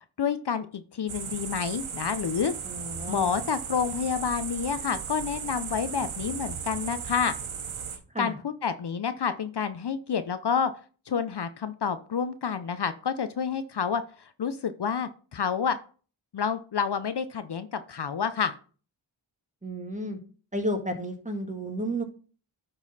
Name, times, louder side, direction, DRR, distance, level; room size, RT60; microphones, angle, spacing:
voice 1, 0.2-2.5 3.1-7.4 8.2-10.7 11.1-15.8 16.3-18.5, left 6 dB, 55° left, 11 dB, 0.7 m, -29 dB
sound 1, 1.1-8.0, right 7 dB, 90° right, 1.1 m, -36 dB
voice 2, 2.6-3.4 8.1-8.3 19.6-20.2 20.5-22.0, equal, 15° right, 4 dB, 1.8 m, -32 dB
10.5 x 3.9 x 4.1 m, 0.39 s
cardioid pair, 40°, 48 cm